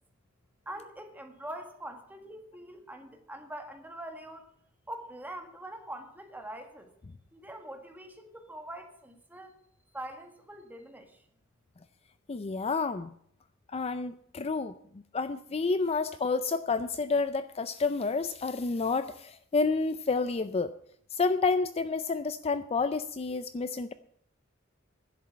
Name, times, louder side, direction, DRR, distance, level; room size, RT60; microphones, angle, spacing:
voice 1, 0.6-4.5 4.9-6.9 7.3-9.5 9.9-11.2, right 1 dB, 10° right, 5 dB, 1.6 m, -43 dB
voice 2, 12.3-13.1 13.7-14.7 15.1-20.7 21.1-23.9, left 4 dB, 30° left, 12 dB, 0.4 m, -29 dB
11.0 x 7.6 x 8.5 m, 0.67 s
head